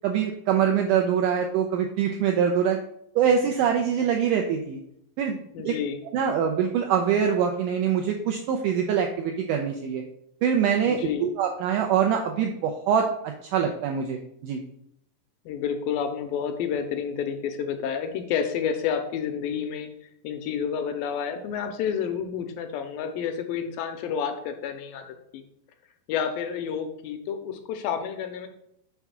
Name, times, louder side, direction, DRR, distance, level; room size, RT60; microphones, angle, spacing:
voice 1, 0.0-2.8 3.2-4.8 5.2-5.4 5.7-5.8 6.1-10.0 10.4-14.6, right 8 dB, 85° right, 2 dB, 1.8 m, -24 dB
voice 2, 5.5-6.0 10.9-11.3 15.5-19.9 20.2-25.1 25.3-25.4 26.1-28.5, left 7 dB, 80° left, 6 dB, 2.2 m, -29 dB
5.9 x 3.5 x 5.6 m, 0.75 s
omnidirectional pair, 4.3 m